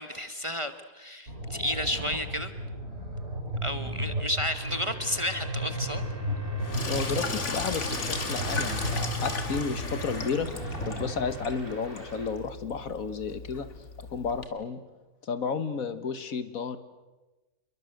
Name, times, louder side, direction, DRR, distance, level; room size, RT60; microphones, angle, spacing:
voice 1, 0.0-2.5 3.6-6.0, left 1 dB, 25° right, 9 dB, 1.0 m, -32 dB
sound 1, 1.3-11.3, right 1 dB, 55° right, 8.0 m, -34 dB
sound 2, 4.5-12.3, right 2 dB, 40° right, 4.6 m, -44 dB
Sink (filling or washing), 6.6-14.4, left 3 dB, 55° left, 2.3 m, -36 dB
voice 2, 6.9-10.5 10.9-13.8 14.1-14.8 15.2-16.8, left 5 dB, 70° left, 11 dB, 1.8 m, -32 dB
27.0 x 22.5 x 7.9 m, 1.1 s
omnidirectional pair, 1.5 m